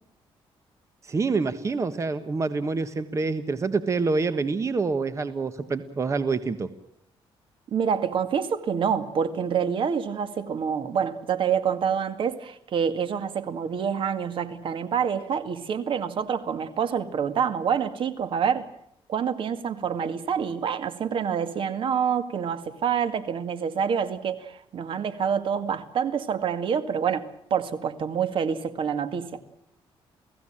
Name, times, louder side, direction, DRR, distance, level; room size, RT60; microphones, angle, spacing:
voice 1, 1.0-6.7, right 4 dB, 30° right, 1.3 m, -26 dB
voice 2, 7.7-18.7 19.1-29.4, right 7 dB, 60° right, 2.0 m, -27 dB
29.5 x 17.0 x 8.8 m
cardioid pair, 120°, 10 cm